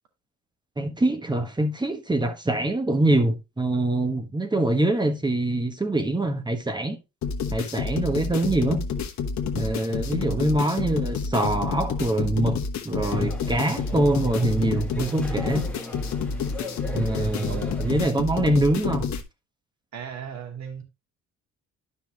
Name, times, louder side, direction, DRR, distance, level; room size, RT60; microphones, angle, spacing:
voice 1, 0.8-7.0 7.5-8.8 9.5-12.6 12.8-15.7 16.9-19.1, right 2 dB, 15° right, 1.3 m, -24 dB
sound 1, 7.2-19.2, left 5 dB, 65° left, 1.3 m, -29 dB
voice 2, 10.1-10.6 16.8-17.8 19.9-20.8, right 8 dB, 65° right, 2.3 m, -38 dB
sound 2, 13.0-18.1, left 2 dB, 5° left, 1.7 m, -39 dB
10.0 x 5.6 x 3.0 m
cardioid pair, 90°, 30 cm